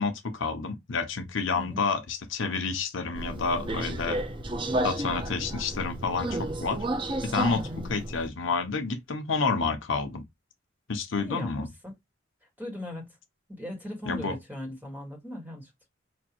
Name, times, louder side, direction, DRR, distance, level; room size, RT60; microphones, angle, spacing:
voice 1, 0.0-4.2 4.8-6.9 7.2-7.6 7.9-10.2 10.9-11.7 14.1-14.4, left 4 dB, 70° left, 0.8 m, -29 dB
Subway metro underground, 3.1-8.3, right 1 dB, 25° right, 0.5 m, -32 dB
voice 2, 7.5-8.0 11.2-11.5 11.8-11.9 12.6-13.2 13.6-15.9, left 1 dB, 10° right, 1.5 m, -38 dB
5.1 x 2.6 x 2.9 m
head